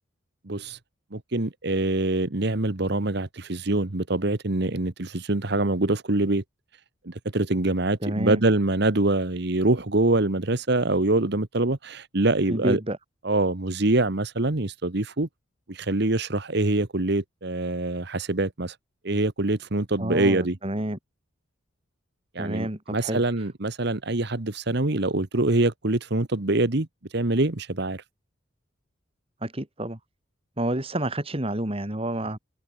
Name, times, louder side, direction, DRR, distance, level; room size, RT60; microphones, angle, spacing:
voice 1, 0.4-0.8 1.1-6.4 7.0-12.8 13.2-15.3 15.7-18.8 19.0-20.6 22.3-28.0, right 2 dB, 60° right, 1.4 m, -24 dB
voice 2, 8.0-8.4 12.5-13.0 20.0-21.0 22.4-23.2 29.4-30.0 30.6-32.4, right 1 dB, 30° right, 2.7 m, -29 dB
head